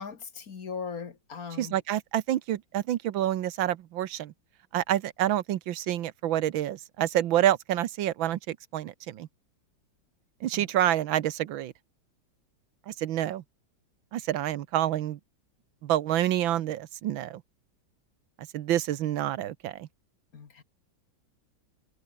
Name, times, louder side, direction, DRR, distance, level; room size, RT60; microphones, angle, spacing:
voice 1, 0.0-1.8 10.5-10.7 20.3-20.6, left 5 dB, 50° left, 2.0 m, -39 dB
voice 2, 1.6-4.3 4.7-9.3 10.4-11.7 12.9-13.4 14.1-15.2 15.8-17.4 18.5-19.9, right 12 dB, 80° right, 1.6 m, -28 dB
omnidirectional pair, 2.2 m